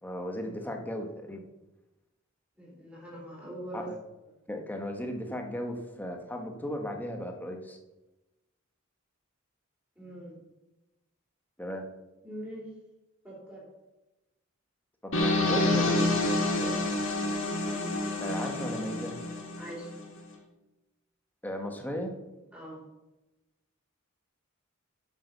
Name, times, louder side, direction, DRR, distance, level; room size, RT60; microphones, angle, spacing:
voice 1, 0.0-1.4 3.7-4.0 4.5-7.8 11.6-11.9 15.0-16.1 18.2-19.1 21.4-22.1, equal, 10° left, 3 dB, 1.4 m, -36 dB
voice 2, 2.6-3.9 10.0-10.4 12.2-12.7 13.2-13.7 16.6-16.8 19.6-20.0 22.5-22.8, right 1 dB, 10° right, -5 dB, 3.7 m, -42 dB
sound 1, 15.1-20.0, left 2 dB, 65° left, 2.4 m, -28 dB
8.3 x 7.8 x 6.7 m, 1.0 s
head